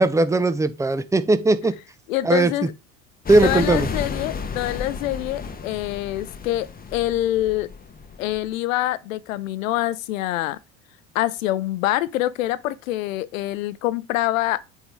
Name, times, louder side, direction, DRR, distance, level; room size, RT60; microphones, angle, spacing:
voice 1, 0.0-1.8 2.2-2.5 3.3-3.9, right 2 dB, 5° right, 0.6 m, -18 dB
voice 2, 2.1-2.7 3.4-7.7 8.2-10.6 11.1-14.6, left 15 dB, 70° left, 0.7 m, -25 dB
sound 1, 3.3-8.5, left 5 dB, 20° left, 1.0 m, -32 dB
8.1 x 3.7 x 4.6 m
figure-of-eight pair, 65°, 42 cm